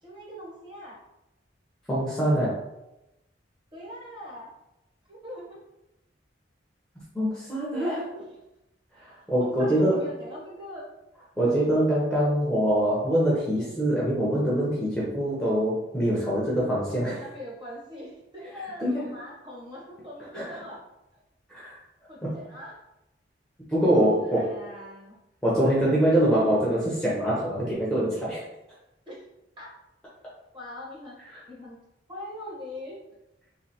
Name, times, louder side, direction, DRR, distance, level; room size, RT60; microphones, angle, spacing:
voice 1, 0.0-1.0 2.2-2.3 3.7-4.5 5.1-5.6 7.7-8.3 9.4-10.9 11.4-11.5 16.9-20.8 22.1-22.7 24.0-25.2 29.1-29.2 29.6-29.7 30.5-31.2 31.5-31.8 32.1-33.0, left 1 dB, 25° right, -5 dB, 1.5 m, -41 dB
voice 2, 1.9-2.5 7.1-8.0 9.0-10.0 11.4-17.2 18.8-19.1 20.2-20.6 21.5-21.8 22.2-22.4 23.7-24.5 25.4-28.5, right 1 dB, 5° left, -7 dB, 0.9 m, -24 dB
3.3 x 3.3 x 4.3 m, 0.92 s
head